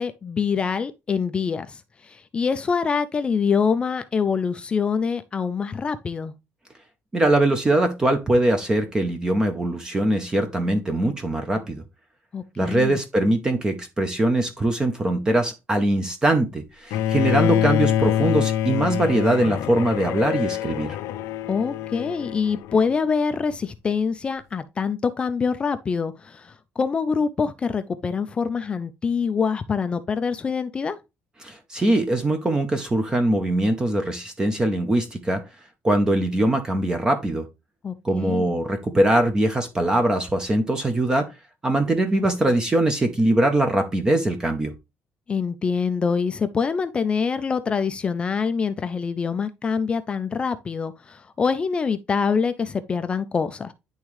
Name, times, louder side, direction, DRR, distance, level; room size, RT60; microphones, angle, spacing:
voice 1, 0.0-6.3 12.3-13.0 21.5-31.0 37.8-38.6 45.3-53.7, left 5 dB, 20° left, 0.4 m, -25 dB
voice 2, 7.1-11.8 12.6-21.0 31.4-35.4 35.8-37.4 38.0-41.3 41.6-44.7, right 1 dB, 15° right, 0.6 m, -22 dB
Bowed string instrument, 16.9-23.0, left 11 dB, 80° left, 0.5 m, -25 dB
10.5 x 3.6 x 3.1 m
cardioid pair, 180°, 5 cm